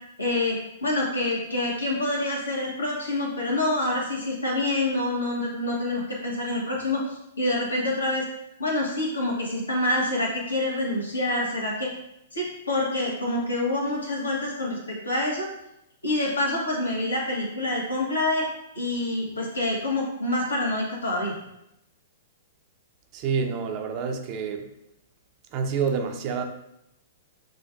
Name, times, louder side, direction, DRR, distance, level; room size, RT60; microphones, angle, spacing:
voice 1, 0.2-8.2 8.6-11.9 12.3-15.5 16.0-18.5 18.7-21.3, left 1 dB, 75° left, -3 dB, 1.3 m, -27 dB
voice 2, 23.1-24.7 25.5-26.4, right 6 dB, 35° right, 4 dB, 0.6 m, -28 dB
7.3 x 2.5 x 2.6 m, 0.82 s
figure-of-eight pair, 105°, 0 cm